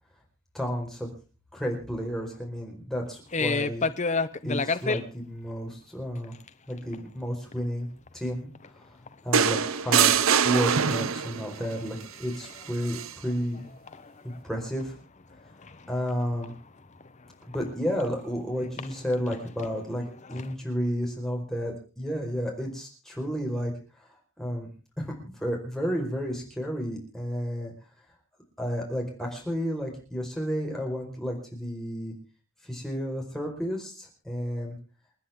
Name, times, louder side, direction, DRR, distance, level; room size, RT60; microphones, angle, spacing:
voice 1, 0.5-1.1 1.5-3.8 4.4-6.3 6.7-8.5 9.2-13.7 14.2-14.9 15.9-16.5 17.5-20.0 20.3-23.7 24.4-24.7 25.0-27.7 28.6-32.1 32.6-34.8, equal, ahead, -1 dB, 4.7 m, -32 dB
sound 1, 3.3-5.0 6.2-6.5 6.8-7.0 7.5-7.6 8.1-8.2 8.4-9.1 9.4-10.8 11.0-14.4 14.7-18.1 18.6-20.5, left 4 dB, 35° left, 0.9 m, -33 dB
sound 2, 9.3-11.5 12.9-13.1, right 7 dB, 80° right, 0.7 m, -23 dB
29.5 x 9.9 x 3.7 m, 0.35 s
head